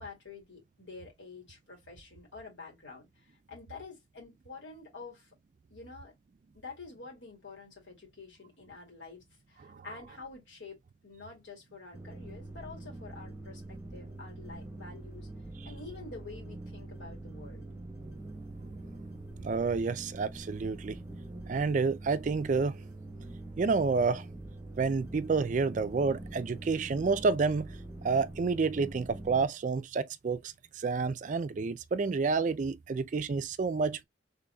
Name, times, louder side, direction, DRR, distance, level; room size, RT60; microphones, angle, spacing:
voice 1, 0.0-5.3 5.7-6.2 6.5-10.8 11.0-15.3 15.6-17.6, left 4 dB, 85° left, 2.3 m, -48 dB
sound 1, 11.9-29.5, right 2 dB, 15° right, 0.9 m, -44 dB
voice 2, 19.4-21.0 21.5-22.8 23.6-24.3 24.8-27.7 28.0-34.0, right 4 dB, 40° right, 0.3 m, -29 dB
3.9 x 3.4 x 2.2 m
head